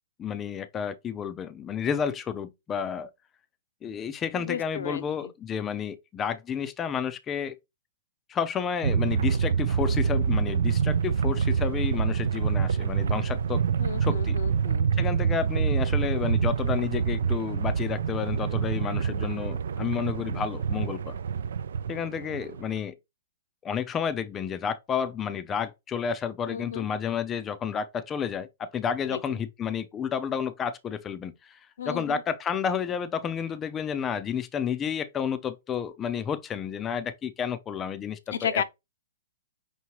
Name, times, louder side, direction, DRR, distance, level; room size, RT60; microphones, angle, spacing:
voice 1, 0.2-3.1 3.8-7.5 8.3-13.6 14.0-14.4 14.9-21.1 21.9-22.9 23.6-31.6 31.9-38.6, left 7 dB, 20° left, 0.4 m, -31 dB
voice 2, 4.3-5.3 13.8-14.9 26.5-26.9 29.1-29.4 31.8-32.2 38.3-38.6, left 7 dB, 75° left, 0.6 m, -33 dB
sound 1, 8.8-22.8, right 6 dB, 75° right, 0.3 m, -26 dB
5.7 x 2.7 x 3.0 m
hypercardioid pair, 140°, 0 cm